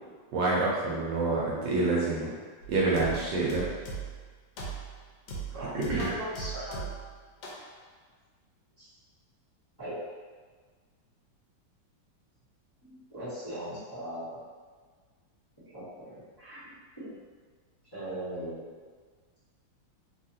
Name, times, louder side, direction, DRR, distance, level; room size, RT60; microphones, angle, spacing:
voice 1, 0.3-2.3 2.7-3.6 5.7-6.1, right 3 dB, 75° right, -6 dB, 1.2 m, -27 dB
sound 1, 2.6-4.2 4.6-5.0 5.3-7.1 7.4-7.7, right 5 dB, 90° left, 1.4 m, -39 dB
voice 2, 5.5-6.9 8.8-8.9 9.8-10.0 12.8-14.4 15.6-17.1 17.9-18.7, right 1 dB, 15° left, -15 dB, 0.9 m, -39 dB
3.3 x 2.4 x 2.7 m, 1.5 s
omnidirectional pair, 2.1 m